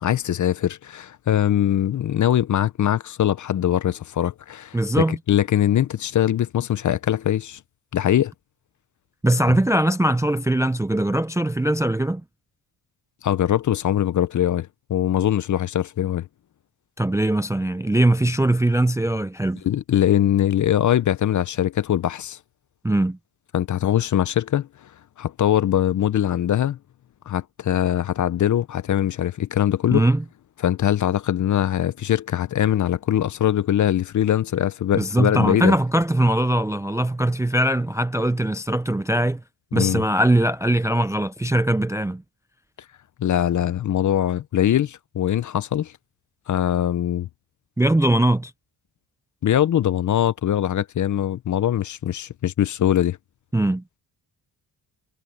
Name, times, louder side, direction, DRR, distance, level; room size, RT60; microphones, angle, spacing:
voice 1, 0.0-7.6 7.9-8.3 9.5-9.6 13.2-16.3 19.6-22.4 23.5-24.7 25.2-26.8 27.3-30.0 30.6-35.7 39.7-40.0 43.2-45.9 46.5-47.3 49.4-53.2, left 11 dB, 45° left, 0.5 m, -22 dB
voice 2, 4.7-5.2 9.2-12.2 17.0-19.6 22.8-23.2 29.9-30.2 34.9-39.4 39.7-42.2 47.8-48.5 53.5-53.8, right 1 dB, 5° right, 0.4 m, -21 dB
wide cardioid pair, 150°, 44 cm